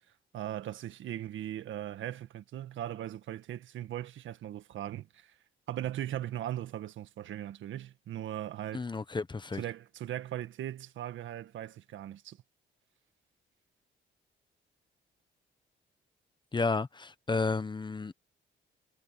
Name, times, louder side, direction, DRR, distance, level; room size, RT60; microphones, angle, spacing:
voice 1, 0.3-5.3 5.7-8.9 9.6-12.4, right 12 dB, 75° right, 1.7 m, -39 dB
voice 2, 8.7-9.6 16.5-18.1, left 4 dB, 25° left, 1.1 m, -32 dB
cardioid pair, 90°, 20 cm